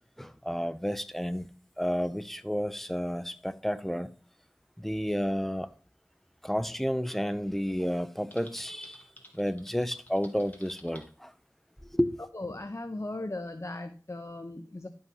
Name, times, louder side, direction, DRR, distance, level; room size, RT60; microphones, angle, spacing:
voice 1, 0.2-1.5 1.8-4.1 4.8-5.7 6.4-9.0 9.3-11.3 11.9-12.2, equal, 5° left, 0.7 m, -31 dB
Typing, 8.3-11.1, equal, 25° left, 2.5 m, -53 dB
voice 2, 12.3-14.9, left 2 dB, 45° left, 0.8 m, -37 dB
11.5 x 5.6 x 5.5 m
wide cardioid pair, 45°, 7 cm